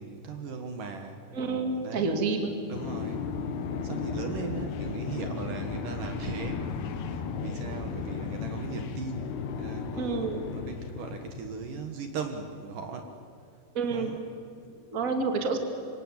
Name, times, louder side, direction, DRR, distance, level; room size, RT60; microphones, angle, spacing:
voice 1, 0.0-1.2 1.8-2.1 2.7-3.3 3.8-6.7 7.1-13.1 13.9-14.2, right 5 dB, 60° right, 5 dB, 2.9 m, -38 dB
voice 2, 1.3-2.5 10.0-10.4 13.7-14.1 14.9-15.6, right 4 dB, 25° right, 4 dB, 2.2 m, -28 dB
sound 1, 2.7-11.7, left 5 dB, 85° left, 3.6 m, -35 dB
27.0 x 24.5 x 8.8 m, 2.5 s
omnidirectional pair, 4.6 m